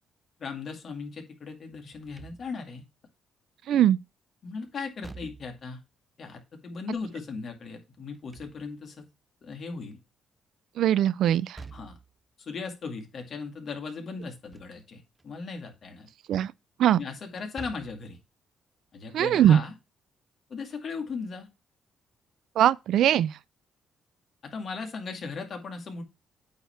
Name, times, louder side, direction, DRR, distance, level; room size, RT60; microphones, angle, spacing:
voice 1, 0.4-2.8 4.4-5.8 6.2-9.1 9.4-10.0 11.7-12.0 12.4-16.1 16.9-18.2 18.9-19.7 20.5-21.5 24.4-26.0, left 4 dB, 45° left, 2.2 m, -37 dB
Slam / Thump thud, 1.9-2.8 4.8-5.7 8.0-9.0 11.3-12.1 14.2-14.8 15.2-15.3 17.3-18.1, right 4 dB, 15° right, 0.5 m, -48 dB
voice 2, 3.7-4.0 10.8-11.6 16.3-16.5 16.8-17.0 19.1-19.6 22.6-23.4, right 11 dB, 75° right, 0.3 m, -21 dB
8.7 x 3.5 x 5.7 m
cardioid pair, 115°, 0 cm